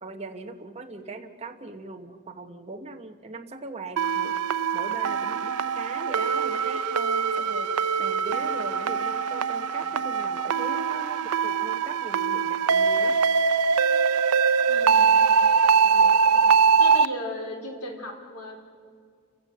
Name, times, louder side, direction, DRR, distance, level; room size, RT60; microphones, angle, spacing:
voice 1, 0.0-4.4 4.7-13.2 15.8-16.2, right 3 dB, 30° right, 4 dB, 1.0 m, -40 dB
sound 1, 4.0-17.1, right 5 dB, 85° right, 0.6 m, -22 dB
voice 2, 14.7-15.2 16.2-18.6, left 1 dB, 85° left, 2 dB, 3.8 m, -37 dB
30.0 x 15.5 x 6.7 m, 2.1 s
head